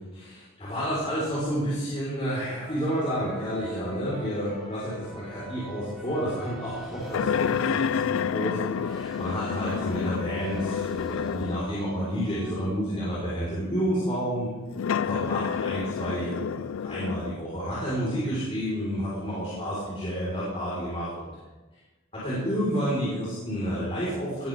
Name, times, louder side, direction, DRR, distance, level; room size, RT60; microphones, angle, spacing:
voice 1, 0.1-14.5 15.1-21.3 22.1-24.5, equal, 30° left, -9 dB, 5.8 m, -30 dB
sound 1, 2.3-12.6, equal, ahead, 5.2 m, -44 dB
sound 2, 7.1-11.8 12.5-12.6 14.7-17.3, left 7 dB, 80° left, 0.4 m, -29 dB
20.0 x 14.5 x 4.0 m, 1.2 s
head